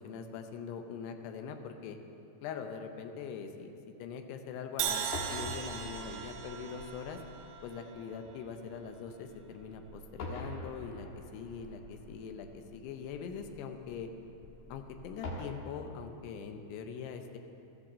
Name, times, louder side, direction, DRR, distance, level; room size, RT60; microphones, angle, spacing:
voice 1, 0.0-2.0 2.4-3.7 4.0-7.2 7.6-11.1 11.3-14.1 14.7-17.4, left 6 dB, 80° left, 5 dB, 2.5 m, -42 dB
Crash cymbal, 4.8-8.8, right 8 dB, 90° right, 3.4 m, -39 dB
sound 1, 5.0-15.4, left 2 dB, 65° left, 2.1 m, -46 dB
13.5 x 10.5 x 7.3 m, 2.7 s
omnidirectional pair, 5.6 m